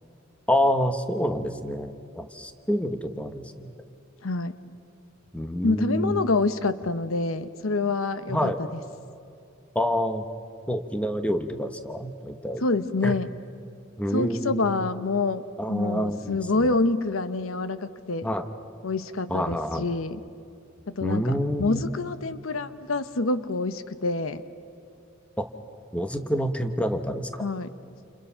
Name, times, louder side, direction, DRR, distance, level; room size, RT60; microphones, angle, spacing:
voice 1, 0.5-3.7 5.3-6.3 8.3-8.6 9.7-10.2 10.7-12.6 13.0-13.1 14.0-14.7 15.6-16.8 18.2-18.5 19.3-19.9 21.0-21.8 25.4-25.5 25.9-27.4, equal, 5° left, 8 dB, 1.1 m, -27 dB
voice 2, 4.2-4.6 5.6-8.8 12.6-13.3 14.1-15.4 15.7-18.3 18.8-20.2 20.9-21.3 21.6-24.4 27.4-27.7, left 3 dB, 90° left, 12 dB, 1.0 m, -27 dB
29.0 x 28.5 x 5.8 m, 2.6 s
head